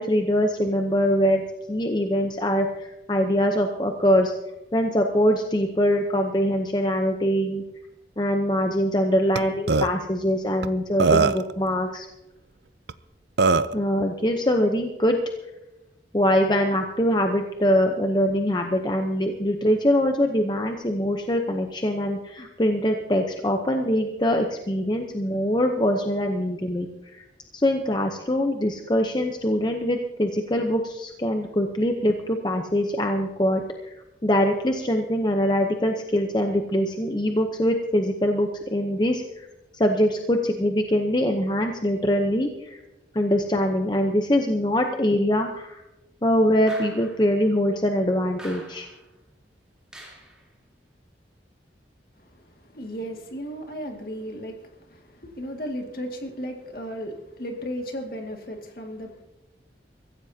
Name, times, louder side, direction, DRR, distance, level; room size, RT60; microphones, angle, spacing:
voice 1, 0.0-4.3 4.7-7.6 8.2-12.1 13.7-15.2 16.1-27.2 27.6-33.6 34.2-39.5 39.7-42.8 43.1-45.8 46.2-48.9, equal, 25° left, 4 dB, 0.8 m, -23 dB
Burping eructation, 9.3-9.4 9.7-9.9 10.6-10.7 11.0-11.5 12.9-13.0 13.4-13.7, right 4 dB, 70° right, 0.6 m, -19 dB
sound 1, 46.7-47.3 48.4-49.0 49.9-50.4, right 1 dB, 5° right, 3.5 m, -44 dB
voice 2, 52.3-59.2, equal, 55° left, 2 dB, 2.2 m, -35 dB
23.5 x 15.0 x 2.8 m, 0.97 s
head